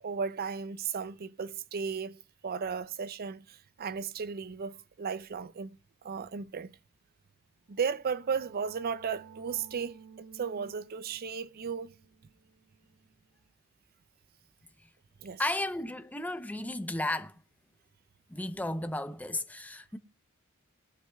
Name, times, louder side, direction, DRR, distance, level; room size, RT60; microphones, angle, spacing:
voice 1, 0.0-6.8 7.7-11.9 15.2-15.5, right 6 dB, 45° right, 0.5 m, -35 dB
sound 1, 7.7-13.2, right 6 dB, 65° right, 1.4 m, -55 dB
voice 2, 15.4-17.3 18.3-20.0, left 1 dB, 5° left, 0.6 m, -34 dB
21.5 x 11.0 x 2.3 m
head